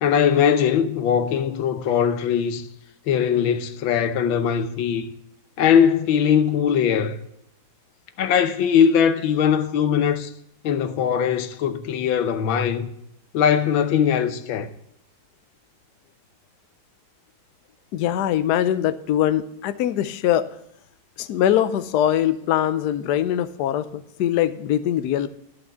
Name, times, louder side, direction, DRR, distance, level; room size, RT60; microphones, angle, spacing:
voice 1, 0.0-2.7 3.1-5.1 5.6-7.2 8.2-10.3 10.6-12.9 13.3-14.7, left 8 dB, 90° left, 1.6 m, -20 dB
voice 2, 17.9-20.5 21.2-25.3, left 11 dB, 70° left, 1.0 m, -22 dB
11.5 x 5.3 x 7.0 m
omnidirectional pair, 2.1 m